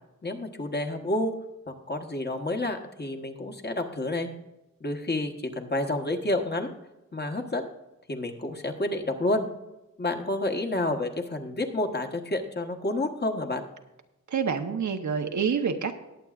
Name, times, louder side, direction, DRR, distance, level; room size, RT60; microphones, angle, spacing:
voice 1, 0.2-1.3 1.7-4.3 4.8-6.7 7.1-7.7 8.1-9.5 10.0-13.6, left 2 dB, 35° left, 4 dB, 1.3 m, -29 dB
voice 2, 14.3-16.0, right 6 dB, 75° right, 5 dB, 1.1 m, -27 dB
20.0 x 8.3 x 2.5 m, 1.0 s
wide cardioid pair, 120°, 30 cm